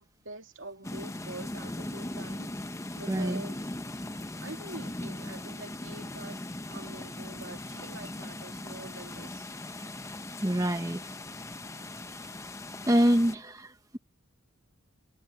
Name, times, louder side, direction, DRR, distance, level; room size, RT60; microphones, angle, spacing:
voice 1, 0.0-2.5 3.0-3.7 4.4-9.5, right 2 dB, 65° right, 2.6 m, -45 dB
sound 1, 0.8-13.4, left 1 dB, 15° left, 0.8 m, -39 dB
voice 2, 3.1-3.4 10.4-11.0 12.9-14.0, equal, 15° right, 1.1 m, -26 dB
head